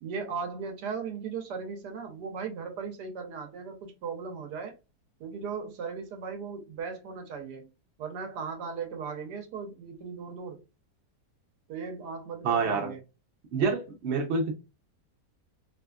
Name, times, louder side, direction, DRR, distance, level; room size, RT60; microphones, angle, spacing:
voice 1, 0.0-4.7 5.2-7.7 8.0-10.6 11.7-13.0, right 5 dB, 80° right, 1.2 m, -37 dB
voice 2, 12.4-12.9 13.5-14.5, right 4 dB, 55° right, 0.8 m, -27 dB
2.8 x 2.4 x 2.2 m
omnidirectional pair, 1.8 m